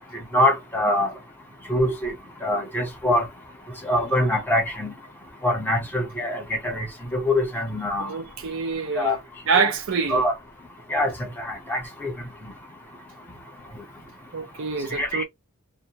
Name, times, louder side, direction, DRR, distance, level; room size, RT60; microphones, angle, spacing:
voice 1, 0.3-1.1 1.7-2.1 2.4-3.3 3.8-4.9 5.4-6.9 7.1-8.1 9.0-9.2 9.5-9.7 10.1-10.3 10.9-12.1 14.9-15.2, left 1 dB, 10° left, 0.9 m, -24 dB
voice 2, 8.0-9.2 9.5-10.3 14.3-15.2, right 5 dB, 60° right, 0.5 m, -26 dB
2.2 x 2.1 x 2.8 m
head